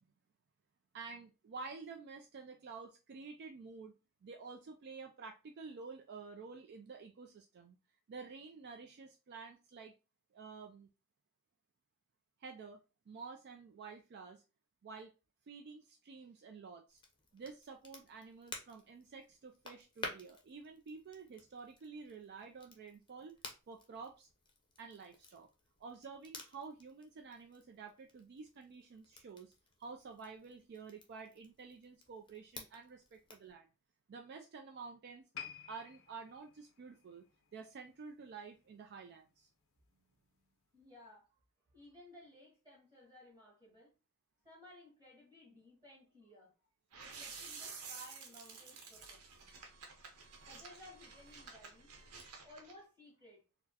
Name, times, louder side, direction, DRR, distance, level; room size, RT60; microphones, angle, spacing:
voice 1, 0.9-3.9 4.2-7.8 8.1-9.9 10.3-10.9 12.4-12.8 13.1-14.4 14.8-15.1 15.5-17.0 17.3-23.4 23.7-24.3 24.8-25.5 25.8-29.5 29.8-33.7 34.1-35.2 35.7-37.2 37.5-39.5, right 4 dB, 50° right, 0.3 m, -50 dB
Crackle, 16.9-33.5, left 3 dB, 20° left, 0.6 m, -54 dB
sound 1, 35.3-38.6 38.9-39.2 39.9-40.0, left 8 dB, 65° left, 0.5 m, -52 dB
voice 2, 40.4-41.3 41.7-43.9 44.4-46.5 46.9-49.5 50.4-52.2 52.4-53.4, left 1 dB, 20° right, 1.3 m, -58 dB
sound 2, 46.9-52.7, right 5 dB, 90° right, 0.9 m, -51 dB
4.2 x 2.0 x 2.8 m
head